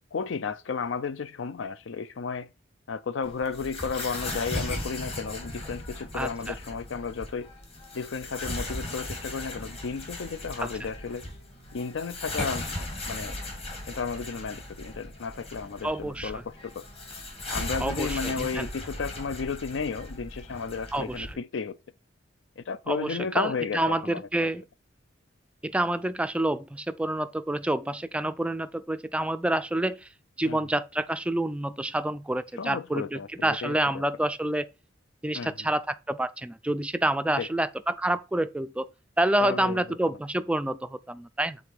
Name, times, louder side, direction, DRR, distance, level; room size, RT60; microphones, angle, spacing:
voice 1, 0.1-2.5 2.9-7.5 7.9-11.3 11.7-12.7 13.1-13.4 13.9-16.8 17.5-21.8 22.6-24.5 30.4-30.6 32.6-34.0 35.3-35.7 37.4-37.5 39.4-40.0, left 5 dB, 70° left, 0.5 m, -33 dB
sound 1, 3.2-21.3, left 1 dB, 30° left, 2.0 m, -37 dB
voice 2, 6.1-6.5 10.6-10.7 15.8-16.3 17.8-18.7 20.9-21.3 22.9-24.7 25.6-30.1 30.4-34.7 35.2-38.9 39.2-41.6, right 1 dB, 5° right, 0.3 m, -28 dB
7.1 x 3.9 x 4.5 m
head